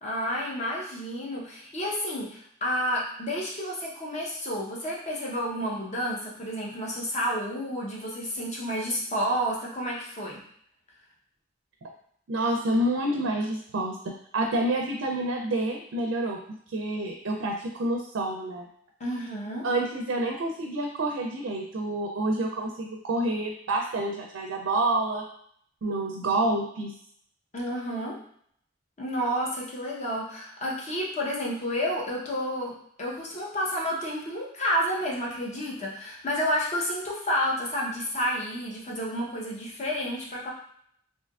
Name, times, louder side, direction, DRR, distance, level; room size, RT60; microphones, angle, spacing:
voice 1, 0.0-10.4 19.0-19.7 27.5-28.2 29.0-32.7 33.0-40.5, equal, 35° left, -3 dB, 0.8 m, -30 dB
voice 2, 12.3-16.4 16.7-18.7 19.6-25.2 25.8-26.9, right 1 dB, 80° right, 1 dB, 0.4 m, -28 dB
3.4 x 2.7 x 2.3 m, 0.65 s
head